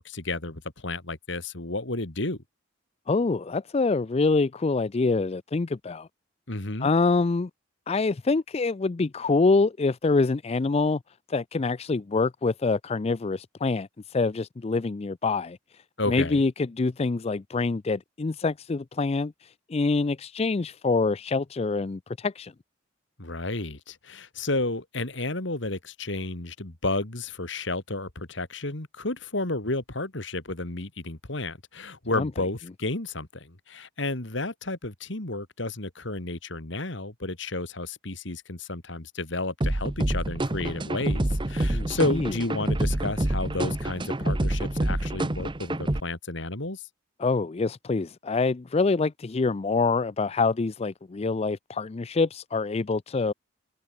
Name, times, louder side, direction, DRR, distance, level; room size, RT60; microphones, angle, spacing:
voice 1, 0.0-2.4 6.5-6.9 16.0-16.4 23.2-46.8, left 2 dB, 65° left, 2.6 m, -32 dB
voice 2, 3.1-6.1 6.8-7.5 7.9-11.0 11.3-22.5 32.1-32.3 41.7-42.3 47.2-53.3, left 3 dB, 30° left, 0.4 m, -26 dB
sound 1, 39.6-46.0, right 1 dB, 25° right, 0.9 m, -27 dB
head